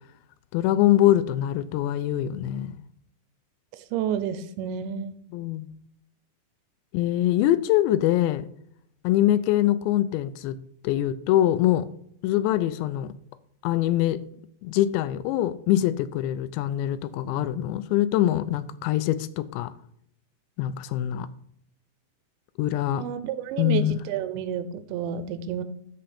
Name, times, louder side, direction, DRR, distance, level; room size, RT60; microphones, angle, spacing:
voice 1, 0.5-2.8 5.3-5.7 6.9-8.5 9.0-10.6 10.8-11.9 12.2-13.1 13.6-14.2 14.6-19.7 20.6-21.3 22.6-23.0 23.6-23.9, left 13 dB, 85° left, 2.9 m, -23 dB
voice 2, 3.8-5.2 22.9-25.6, right 8 dB, 85° right, 3.0 m, -30 dB
13.0 x 5.2 x 4.2 m
omnidirectional pair, 5.1 m